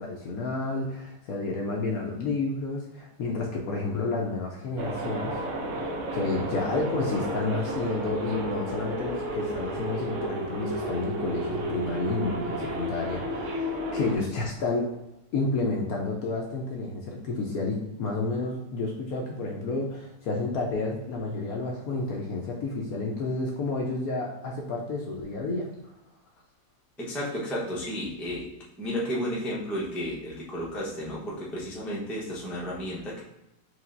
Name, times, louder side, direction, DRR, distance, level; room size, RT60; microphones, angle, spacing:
voice 1, 0.0-5.3 6.1-14.9 15.3-25.6, left 3 dB, 65° left, -1 dB, 1.0 m, -30 dB
sound 1, 4.8-14.2, equal, 65° right, 0.8 m, -32 dB
voice 2, 27.0-28.5 28.8-33.2, equal, ahead, -6 dB, 0.5 m, -32 dB
4.7 x 3.3 x 2.5 m, 0.91 s
omnidirectional pair, 2.0 m